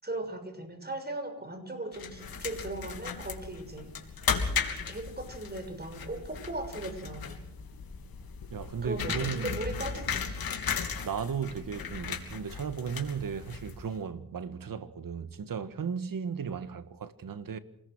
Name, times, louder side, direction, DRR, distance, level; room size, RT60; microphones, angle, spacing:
voice 1, 0.0-3.9 4.8-7.4 8.8-10.4, right 2 dB, 25° right, 6.6 m, -38 dB
sound 1, 1.9-14.0, left 6 dB, 80° left, 3.2 m, -36 dB
voice 2, 8.5-9.6 9.9-10.1 11.0-17.6, right 7 dB, 70° right, 1.7 m, -35 dB
27.5 x 20.0 x 6.3 m
cardioid pair, 60°, 35 cm